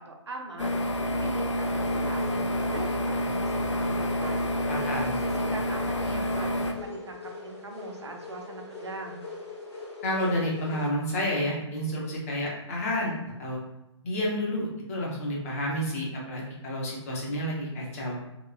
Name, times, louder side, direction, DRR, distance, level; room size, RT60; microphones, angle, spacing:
voice 1, 0.0-9.2, right 2 dB, 65° right, 2 dB, 0.5 m, -41 dB
sound 1, 0.6-6.7, left 1 dB, 75° left, 0.4 m, -28 dB
sound 2, 1.8-10.9, left 4 dB, 60° left, 1.4 m, -42 dB
voice 2, 4.7-5.2 10.0-13.1 13.4-13.6 14.0-18.2, equal, 30° left, -3 dB, 0.6 m, -30 dB
2.8 x 2.2 x 2.4 m, 0.94 s
figure-of-eight pair, 130°, 16 cm